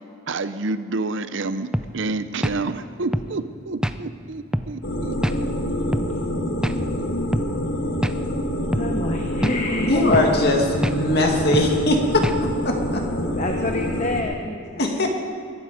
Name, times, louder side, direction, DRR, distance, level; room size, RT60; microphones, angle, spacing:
voice 1, 0.3-5.5, right 3 dB, 65° right, 12 dB, 0.7 m, -29 dB
sound 1, 1.7-1.9 2.4-2.6 3.1-3.3 3.8-4.0 4.5-4.7 5.2-5.4 5.9-6.1 6.6-6.8 7.3-7.5 8.0-8.2 8.7-8.9 9.4-9.6 10.1-10.3 10.8-11.0 11.5-11.7 12.2-12.4, equal, 5° right, 0.4 m, -25 dB
sound 2, 4.8-14.2, equal, 70° left, 1.7 m, -26 dB
voice 2, 8.7-10.2 13.3-15.1, left 2 dB, 35° left, 3 dB, 0.9 m, -27 dB
voice 3, 9.9-12.3 12.6-13.0 14.8-15.1, left 1 dB, 55° left, 2 dB, 2.3 m, -20 dB
22.0 x 12.0 x 5.2 m, 2.3 s
head